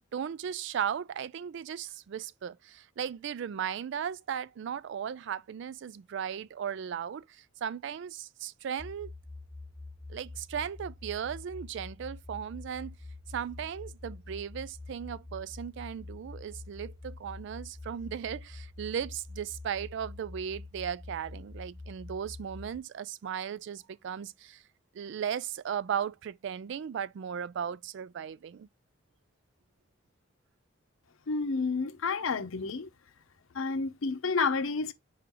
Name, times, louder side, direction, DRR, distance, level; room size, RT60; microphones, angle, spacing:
voice 1, 0.1-9.1 10.1-13.0 13.3-24.6 24.9-28.7, right 8 dB, 60° right, 0.3 m, -36 dB
sound 1, 8.8-22.8, left 2 dB, 15° left, 0.4 m, -46 dB
voice 2, 31.3-32.9 33.5-34.9, left 4 dB, 85° left, 0.7 m, -30 dB
4.8 x 3.7 x 2.9 m
head